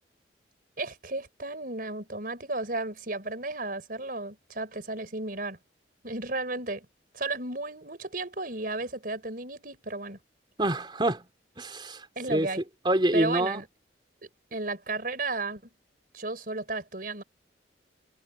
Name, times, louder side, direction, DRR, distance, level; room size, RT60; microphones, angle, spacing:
voice 1, 0.8-5.6 6.0-6.9 7.1-10.2 12.2-12.6 13.1-13.7 14.2-15.6 16.1-17.2, right 2 dB, 50° right, 5.1 m, -34 dB
voice 2, 10.6-11.3 11.6-12.5 12.9-13.6, right 1 dB, 25° right, 3.4 m, -26 dB
head